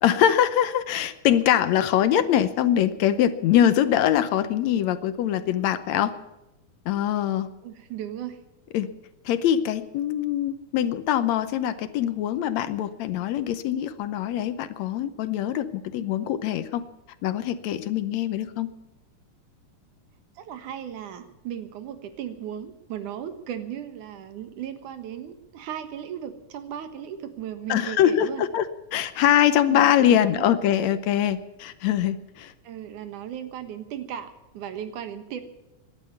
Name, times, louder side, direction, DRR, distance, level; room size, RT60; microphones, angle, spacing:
voice 1, 0.0-6.1 6.9-7.5 8.7-8.9 9.3-16.8 17.2-18.7 27.7-32.5, left 10 dB, 75° left, 13 dB, 1.9 m, -23 dB
voice 2, 7.6-8.4 20.4-28.4 29.7-30.6 32.6-35.4, right 10 dB, 85° right, 9 dB, 2.9 m, -36 dB
17.5 x 11.5 x 7.0 m, 1.0 s
omnidirectional pair, 3.5 m